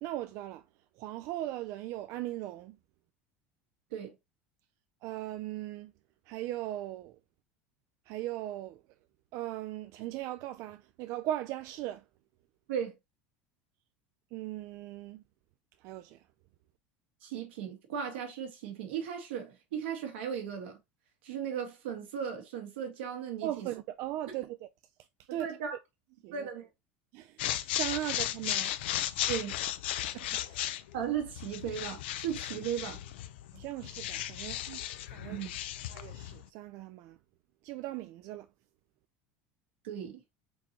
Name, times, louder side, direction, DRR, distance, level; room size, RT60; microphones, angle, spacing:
voice 1, 0.0-0.6 1.0-2.8 5.0-5.9 6.3-7.1 8.1-8.8 9.3-12.0 14.3-15.2 15.8-16.2 23.4-24.6 25.3-25.5 26.2-26.5 27.1-27.4 27.8-28.7 30.1-30.8 33.5-34.6 35.1-35.4 35.9-37.2 37.6-38.5, right 14 dB, 60° right, 0.4 m, -38 dB
voice 2, 17.2-20.8 21.2-23.7 24.3-24.4 25.3-25.8 26.3-26.7 29.3-29.5 30.9-33.0 34.7-34.8 35.3-35.5 39.8-40.2, right 8 dB, 90° right, 1.6 m, -36 dB
sound 1, 27.4-36.4, left 12 dB, 85° left, 0.4 m, -35 dB
4.4 x 2.8 x 2.9 m
supercardioid pair, 115°, 6 cm